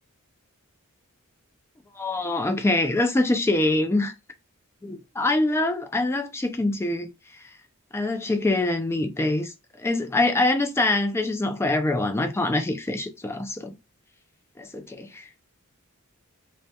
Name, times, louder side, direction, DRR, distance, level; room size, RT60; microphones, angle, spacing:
voice 1, 2.0-4.1 4.8-7.1 7.9-13.7 14.6-15.3, left 2 dB, 10° left, 0.3 m, -24 dB
2.2 x 2.1 x 2.7 m
head